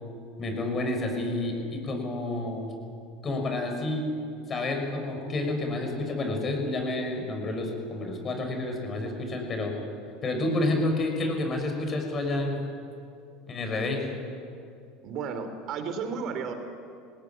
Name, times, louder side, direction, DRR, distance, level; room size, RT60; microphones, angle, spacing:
voice 1, 0.4-2.7 3.2-4.1 4.5-9.7 10.2-12.6 13.5-14.1, left 2 dB, 35° left, 3 dB, 5.9 m, -29 dB
voice 2, 15.0-16.5, right 5 dB, 55° right, 8 dB, 3.1 m, -33 dB
20.0 x 18.5 x 8.7 m, 2.4 s
hypercardioid pair, 95°, 0 cm